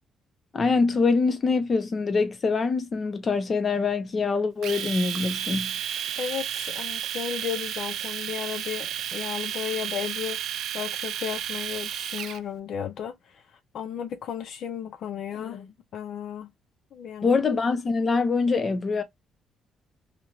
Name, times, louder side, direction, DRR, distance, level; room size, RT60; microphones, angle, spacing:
voice 1, 0.5-5.8 17.2-19.0, left 4 dB, 40° left, 0.8 m, -24 dB
Domestic sounds home sounds, 4.6-12.4, right 10 dB, 75° right, 0.3 m, -32 dB
voice 2, 6.2-16.5 16.9-17.4, left 9 dB, 70° left, 0.5 m, -34 dB
2.9 x 2.5 x 2.9 m
cardioid pair, 90°, 0 cm